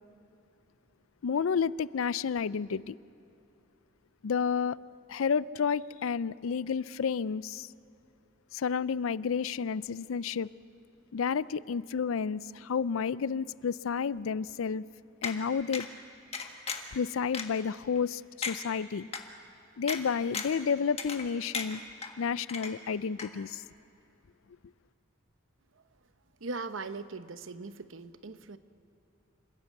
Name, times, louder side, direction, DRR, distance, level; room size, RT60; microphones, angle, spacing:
voice 1, 1.2-3.0 4.2-4.8 5.1-7.7 8.5-10.5 11.1-14.9 15.2-15.9 16.9-18.2 18.5-19.1 19.8-21.8 22.2-23.6, left 6 dB, 85° left, 19 dB, 0.4 m, -30 dB
sound 1, 15.2-15.4 15.7-15.9 16.3-16.9 17.3-17.4 18.0-18.1 18.4-18.6 19.1-19.2 19.9-20.0 20.3-20.6 21.0-21.3 21.5-22.1 22.5-22.9 23.2-23.3, left 5 dB, 30° left, 1.5 m, -35 dB
voice 2, 26.4-28.6, right 3 dB, 70° right, 11 dB, 0.9 m, -39 dB
27.5 x 15.0 x 8.3 m, 2.7 s
head